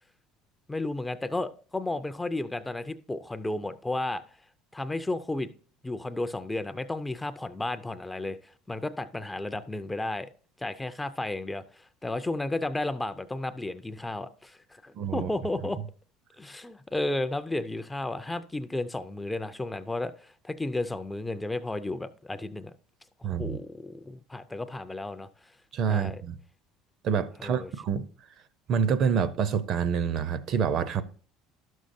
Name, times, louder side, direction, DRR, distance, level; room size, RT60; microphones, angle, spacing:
voice 1, 0.7-4.2 4.7-5.5 5.8-10.3 10.6-15.8 16.4-22.7 23.2-25.3 25.9-26.2 27.4-27.7, left 2 dB, 10° left, 0.3 m, -33 dB
voice 2, 15.0-15.3 23.2-23.6 25.7-26.4 27.0-28.1 28.7-31.0, right 7 dB, 45° right, 0.5 m, -27 dB
12.0 x 6.3 x 2.6 m
cardioid pair, 140°, 0 cm